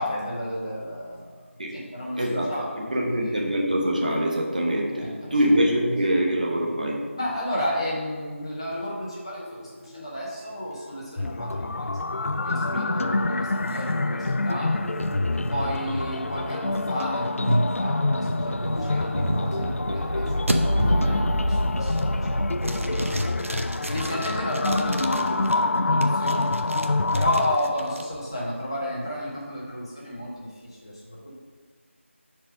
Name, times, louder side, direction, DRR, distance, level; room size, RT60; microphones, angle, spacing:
voice 1, 0.0-1.4 1.7-2.7 3.0-3.4 5.0-5.3 7.2-11.9 12.4-14.7 15.3-23.1 23.9-26.5 27.1-31.3, left 1 dB, 20° left, -7 dB, 1.2 m, -32 dB
voice 2, 2.2-2.5 2.9-7.0 12.7-13.1 23.9-24.0, equal, 35° right, -2 dB, 0.9 m, -24 dB
sound 1, 8.7-10.0 10.3-25.3 26.1-26.7, equal, ahead, 0.5 m, -32 dB
sound 2, 11.2-27.6, left 2 dB, 75° left, 0.3 m, -27 dB
sound 3, 13.6-20.0 20.5-20.6 21.1-21.4 21.8-22.3 22.6-25.5 26.0-28.0, right 1 dB, 75° right, 0.7 m, -32 dB
5.4 x 4.5 x 6.2 m, 1.5 s
figure-of-eight pair, 175°, 7 cm